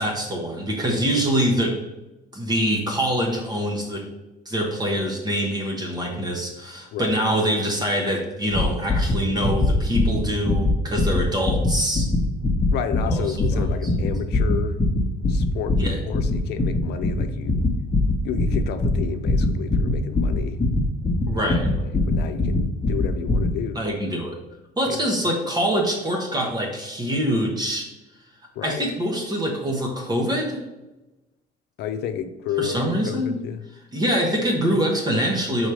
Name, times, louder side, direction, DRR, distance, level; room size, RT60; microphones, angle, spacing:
voice 1, 0.0-1.8 2.3-4.1 4.4-12.1 13.1-13.9 15.8-16.0 21.3-21.7 23.7-24.4 24.8-27.9 28.6-30.6 32.6-33.4 33.9-35.7, equal, 25° right, -1 dB, 1.2 m, -24 dB
sound 1, 8.5-23.6, left 2 dB, 20° left, 1.2 m, -23 dB
voice 2, 12.7-14.8 15.3-17.6 18.2-20.6 21.4-21.5 21.8-23.8 24.9-25.0 28.5-28.9 31.8-33.7, left 9 dB, 80° left, 8 dB, 0.6 m, -31 dB
4.9 x 4.2 x 4.8 m, 1.0 s
cardioid pair, 110°, 17 cm